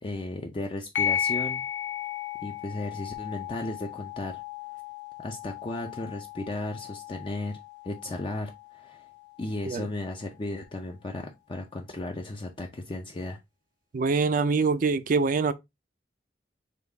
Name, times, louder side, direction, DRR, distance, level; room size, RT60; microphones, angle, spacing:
voice 1, 0.0-1.6 2.4-4.4 5.2-7.6 7.8-9.1 9.4-13.4, left 2 dB, 30° left, 0.5 m, -35 dB
sound 1, 0.9-10.0, left 9 dB, 75° left, 0.6 m, -35 dB
voice 2, 13.9-15.5, right 4 dB, 50° right, 0.4 m, -24 dB
5.2 x 2.3 x 3.3 m
head